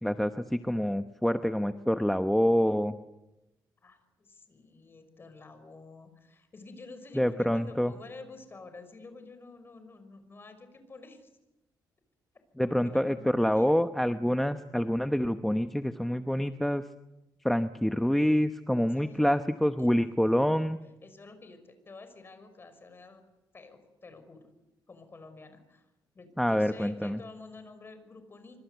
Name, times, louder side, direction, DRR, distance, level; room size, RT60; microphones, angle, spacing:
voice 1, 0.0-3.0 7.1-7.9 12.6-16.8 17.4-20.8 26.4-27.2, equal, 5° left, 8 dB, 0.9 m, -26 dB
voice 2, 3.8-11.3 12.6-13.8 19.0-19.2 19.8-20.0 20.8-23.2 23.5-24.5 24.9-28.6, left 3 dB, 30° left, 9 dB, 5.6 m, -49 dB
26.0 x 25.0 x 8.2 m, 0.94 s
cardioid pair, 130°, 8 cm